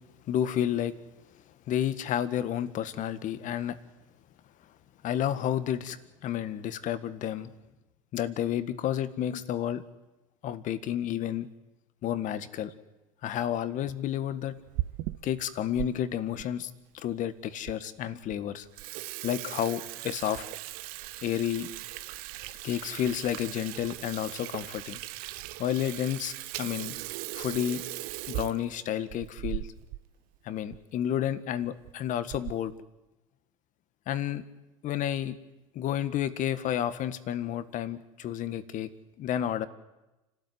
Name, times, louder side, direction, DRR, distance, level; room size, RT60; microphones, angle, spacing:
voice 1, 0.3-0.9 1.7-3.8 5.0-6.0 6.2-7.5 8.1-9.8 10.4-11.5 12.0-12.7 13.2-14.6 15.2-18.7 19.2-20.4 21.2-21.7 22.6-25.0 25.6-27.0 27.3-27.8 28.3-29.7 30.5-32.7 34.1-34.4 34.8-35.4 35.8-38.9 39.2-39.7, left 10 dB, 50° left, 13 dB, 1.7 m, -31 dB
Water tap faucet / Sink (filling or washing), 14.5-15.9 16.4-16.5 17.2-17.3 17.7-17.8 18.1-18.3 18.6-30.0 30.3-30.4 30.7-30.8 31.6-31.9 32.3-32.7, right 18 dB, 60° right, 0.9 m, -38 dB
29.5 x 13.0 x 9.5 m, 1.1 s
hypercardioid pair, 75°, 17 cm